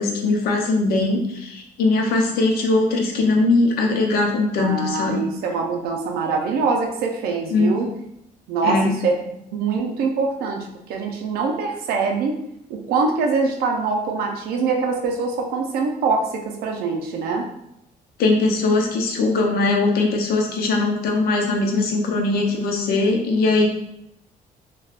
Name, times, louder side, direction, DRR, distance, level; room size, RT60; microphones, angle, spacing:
voice 1, 0.0-5.3 7.5-7.8 8.6-8.9 18.2-23.7, left 3 dB, 75° left, 2 dB, 0.6 m, -20 dB
voice 2, 4.6-7.9 8.5-9.2 9.5-12.4 12.7-17.5, right 4 dB, 80° right, 1 dB, 0.4 m, -23 dB
3.3 x 2.2 x 2.3 m, 0.79 s
cardioid pair, 160°, 16 cm